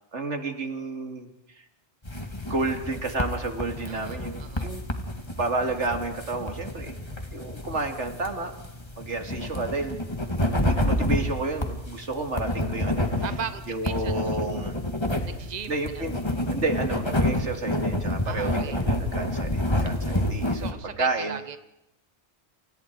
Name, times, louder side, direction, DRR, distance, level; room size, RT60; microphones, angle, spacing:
voice 1, 0.1-1.6 2.4-4.8 5.4-7.0 7.3-8.5 9.0-10.0 10.6-13.1 13.7-14.8 15.7-16.1 16.5-21.4, right 3 dB, 85° right, 6 dB, 2.8 m, -31 dB
sound 1, 2.0-20.7, left 1 dB, 25° left, 2.4 m, -29 dB
voice 2, 3.9-4.7 13.2-14.4 15.2-16.1 18.2-18.8 20.5-21.6, right 7 dB, 40° right, 11 dB, 1.3 m, -38 dB
29.5 x 26.5 x 4.7 m, 0.82 s
omnidirectional pair, 1.2 m